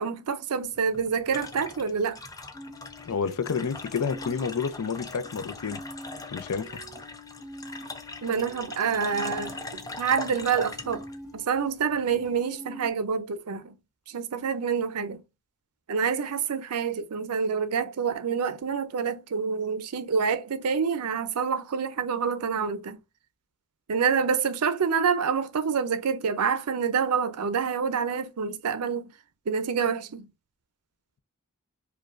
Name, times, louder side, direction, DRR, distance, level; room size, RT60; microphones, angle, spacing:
voice 1, 0.0-2.2 8.2-11.0 11.3-13.7 14.1-15.2 15.9-23.0 23.9-29.1 29.5-30.3, right 6 dB, 85° right, 0.5 m, -27 dB
sound 1, 0.6-12.4, left 3 dB, 15° left, 0.4 m, -41 dB
sound 2, 2.5-12.9, left 1 dB, 10° right, 0.9 m, -46 dB
voice 2, 3.0-5.8 6.3-6.8, left 5 dB, 75° left, 0.5 m, -29 dB
5.0 x 2.3 x 2.4 m
head